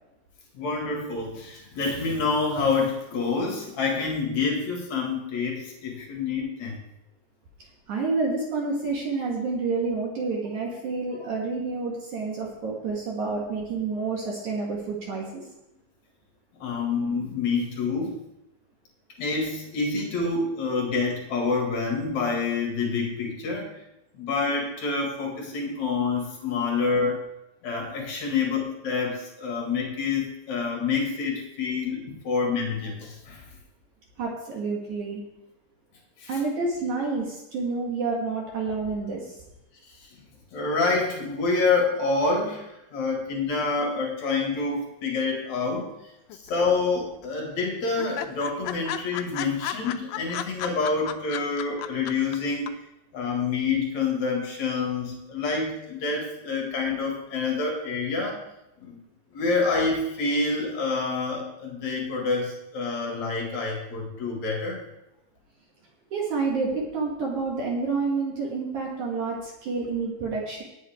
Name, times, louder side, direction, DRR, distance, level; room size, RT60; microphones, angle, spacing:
voice 1, 0.5-6.8 16.6-18.1 19.2-23.7 24.1-27.2 27.6-33.4 36.2-36.3 40.5-45.9 46.4-52.7 53.1-58.4 58.8-59.0 59.3-64.8, left 4 dB, 50° left, 0 dB, 2.6 m, -27 dB
voice 2, 7.9-15.4 34.2-35.2 36.3-39.4 66.1-70.6, right 4 dB, 60° right, -2 dB, 2.1 m, -29 dB
sound 1, 46.3-47.0 47.2-47.3 47.6-47.7 48.0-52.4 52.7-52.8, left 13 dB, 85° left, 2.8 m, -33 dB
18.5 x 8.0 x 3.5 m, 0.88 s
omnidirectional pair, 5.5 m